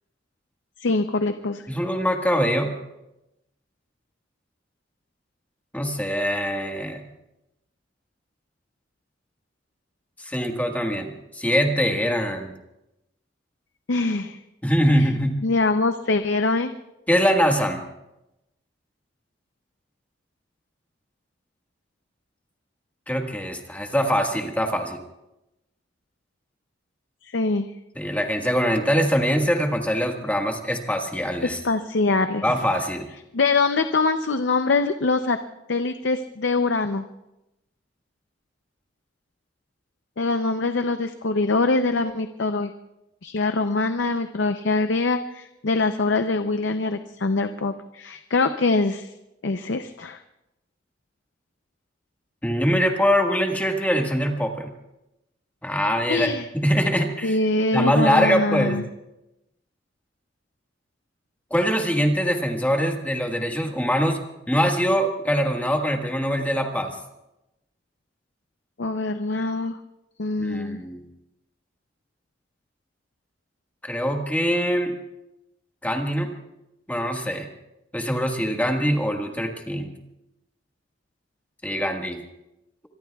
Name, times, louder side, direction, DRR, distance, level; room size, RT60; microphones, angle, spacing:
voice 1, 0.8-1.6 13.9-14.4 14.9-15.1 15.4-16.7 27.2-27.7 31.6-32.5 33.3-35.4 35.7-37.1 40.2-42.7 43.2-49.1 49.4-50.2 56.1-56.4 57.2-58.8 68.8-69.8 70.2-70.8, left 3 dB, 70° left, 8 dB, 0.6 m, -23 dB
voice 2, 1.7-2.7 5.7-7.0 10.2-12.5 14.6-15.4 17.1-17.8 23.1-25.0 27.9-31.6 32.4-33.1 52.4-54.7 55.6-57.4 57.7-58.8 61.5-66.9 70.4-71.0 73.8-74.9 75.8-76.3 76.9-77.5 77.9-79.9 81.6-82.2, equal, 10° left, 2 dB, 1.6 m, -23 dB
25.5 x 23.0 x 2.3 m, 0.92 s
head